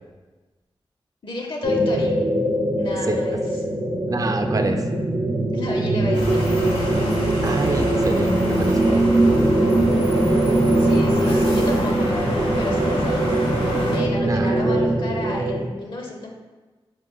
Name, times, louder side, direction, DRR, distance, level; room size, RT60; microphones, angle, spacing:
voice 1, 1.2-2.2 2.8-3.4 5.5-6.5 10.8-13.4 13.9-16.3, left 2 dB, 55° left, 1 dB, 0.5 m, -32 dB
sound 1, 1.6-15.7, right 1 dB, 80° right, 0.7 m, -21 dB
voice 2, 4.1-4.8 7.4-9.1 14.3-14.7, right 3 dB, 35° right, 6 dB, 0.4 m, -27 dB
sound 2, 6.1-14.0, left 1 dB, 90° left, 0.8 m, -28 dB
4.5 x 2.4 x 3.8 m, 1.2 s
wide cardioid pair, 60°, 10 cm